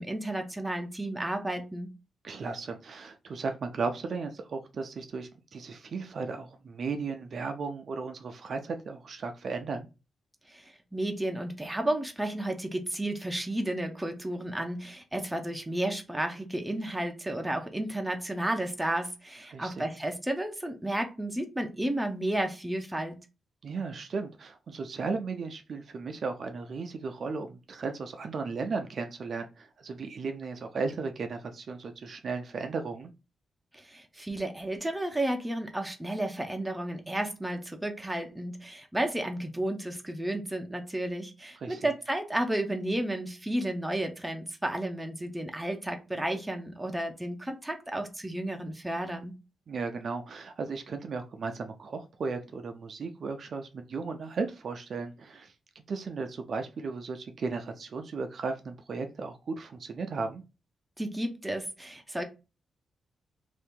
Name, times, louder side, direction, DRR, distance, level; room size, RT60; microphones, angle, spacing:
voice 1, 0.0-1.9 10.5-23.2 33.7-49.3 61.0-62.2, right 1 dB, 5° right, 0.6 m, -32 dB
voice 2, 2.2-9.9 19.5-19.8 23.6-33.1 41.6-41.8 49.7-55.5 55.9-60.4, right 4 dB, 55° right, 0.4 m, -35 dB
2.8 x 2.5 x 3.5 m
cardioid pair, 120°, 0 cm